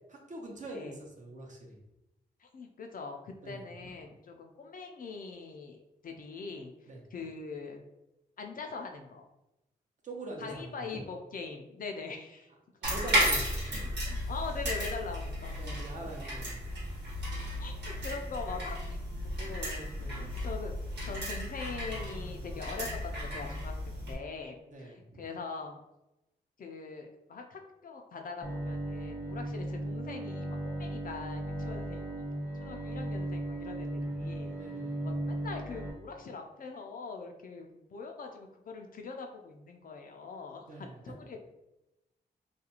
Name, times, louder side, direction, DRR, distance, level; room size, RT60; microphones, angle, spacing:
voice 1, 0.1-1.8 3.4-3.6 6.9-7.0 10.0-11.0 12.8-14.0 15.6-16.6 20.0-20.3 24.7-25.2 34.6-35.1 40.6-41.3, right 2 dB, 45° right, 0 dB, 0.8 m, -44 dB
voice 2, 0.7-1.0 2.4-5.8 6.0-6.7 7.1-7.8 8.4-9.2 10.4-12.5 13.8-15.6 17.6-19.0 19.4-20.8 21.0-23.7 24.1-25.8 26.6-34.6 35.0-41.4, left 4 dB, 50° left, 3 dB, 0.4 m, -42 dB
sound 1, 12.8-24.1, equal, 75° right, 1.1 m, -34 dB
Bowed string instrument, 28.4-35.9, right 1 dB, 15° right, 0.9 m, -36 dB
2.4 x 2.2 x 2.9 m, 0.93 s
cardioid pair, 55°, 18 cm